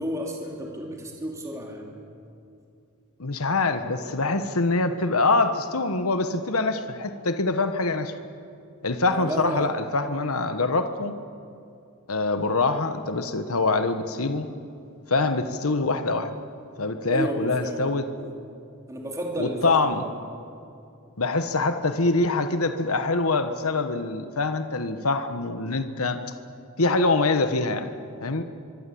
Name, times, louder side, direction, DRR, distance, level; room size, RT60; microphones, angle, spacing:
voice 1, 0.0-1.9 9.1-9.7 17.1-18.3 18.9-20.1, equal, 15° right, 0 dB, 2.9 m, -32 dB
voice 2, 3.2-8.1 8.8-11.2 12.1-14.5 15.1-16.4 16.8-18.1 19.4-20.0 21.2-26.2 26.8-27.9 28.2-28.4, left 3 dB, 80° left, 9 dB, 1.3 m, -24 dB
24.5 x 24.0 x 8.6 m, 2.6 s
head